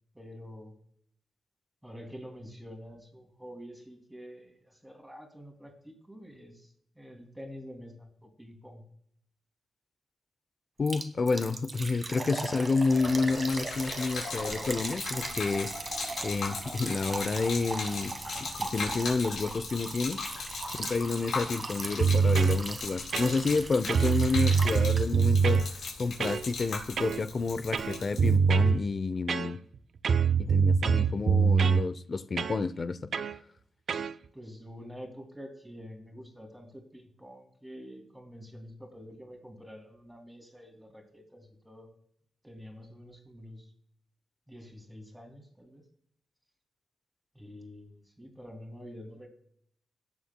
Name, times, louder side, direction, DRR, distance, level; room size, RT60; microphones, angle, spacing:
voice 1, 0.1-0.7 1.8-8.8 34.3-41.9 42.4-43.7 44.5-45.8 47.3-49.3, equal, 5° right, 2.6 m, -47 dB
voice 2, 10.8-18.1 18.4-20.2 20.7-29.6 30.4-33.0, left 4 dB, 45° left, 0.6 m, -30 dB
Liquid, 10.9-25.3 25.5-25.6 26.1-26.2, right 3 dB, 35° right, 1.3 m, -39 dB
Gurgling / Liquid, 12.9-28.3, left 4 dB, 80° left, 3.7 m, -39 dB
sound 1, 22.0-22.6 23.1-23.6 23.9-25.7 26.2-26.4 27.0-27.2 27.7-28.8 29.3-29.8 30.0-31.8 32.4-32.6 33.1-33.4 33.9-34.1, right 6 dB, 65° right, 0.5 m, -24 dB
17.5 x 7.2 x 2.2 m
cardioid pair, 80°, 0 cm